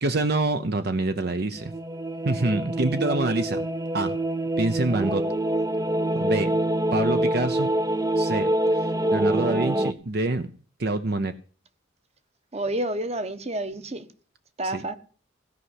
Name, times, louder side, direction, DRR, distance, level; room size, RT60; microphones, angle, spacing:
voice 1, 0.0-1.7 2.2-3.6 3.9-4.2 4.6-5.2 6.1-6.5 6.9-7.7 8.2-10.5 10.8-11.3 14.6-14.8, right 2 dB, 50° right, 0.7 m, -26 dB
sound 1, 1.6-9.9, right 1 dB, 15° right, 0.5 m, -25 dB
voice 2, 12.5-14.1 14.6-15.0, right 1 dB, 30° right, 1.2 m, -29 dB
16.5 x 5.6 x 9.7 m
head